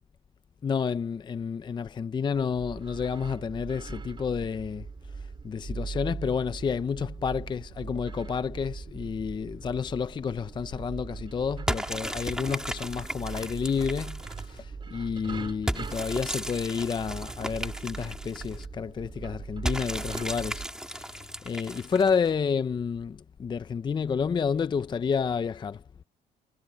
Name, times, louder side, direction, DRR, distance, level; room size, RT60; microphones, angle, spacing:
voice 1, 0.6-4.9 5.1-25.8, left 6 dB, 25° left, 0.5 m, -30 dB
sound 1, 2.3-20.7, right 5 dB, 30° right, 3.3 m, -40 dB
sound 2, 11.7-14.6 15.7-18.7 19.6-22.3, right 1 dB, 5° right, 3.5 m, -35 dB
cardioid pair, 110°, 17 cm